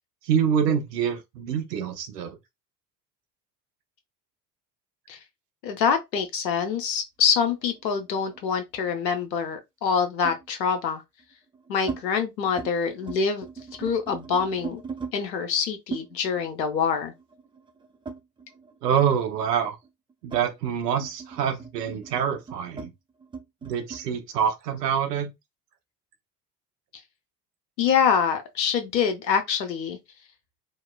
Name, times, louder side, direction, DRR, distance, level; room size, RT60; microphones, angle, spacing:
voice 1, 0.2-2.4 18.8-19.8 20.2-22.9 23.6-25.3, right 8 dB, 70° right, 0.8 m, -26 dB
voice 2, 5.6-11.0 11.7-13.5 13.8-14.8 15.1-17.1 27.8-30.0, left 6 dB, 80° left, 0.8 m, -25 dB
sound 1, 7.4-8.9 10.2-10.5 11.2-12.0 12.4-12.7 13.0-15.2 15.9-18.8 19.1-24.1, right 5 dB, 10° right, 0.4 m, -40 dB
2.9 x 2.7 x 2.2 m
figure-of-eight pair, 60°, 50 cm